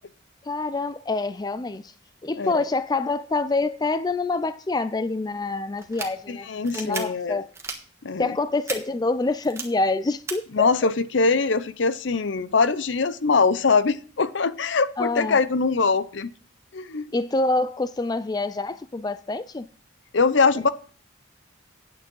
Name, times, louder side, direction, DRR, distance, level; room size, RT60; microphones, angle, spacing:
voice 1, 0.4-1.9 2.2-6.5 6.7-7.5 8.2-10.7 15.0-15.4 17.1-19.7, left 3 dB, 20° left, 0.4 m, -26 dB
sound 1, 5.8-6.1 6.6-7.0 7.5-7.8 8.7-8.8 9.4-9.6 10.3-10.4, right 4 dB, 15° right, 1.4 m, -32 dB
voice 2, 6.3-7.4 8.0-8.3 10.5-16.3 16.7-17.1 20.1-20.7, left 4 dB, 65° left, 0.6 m, -22 dB
9.1 x 8.7 x 5.4 m
head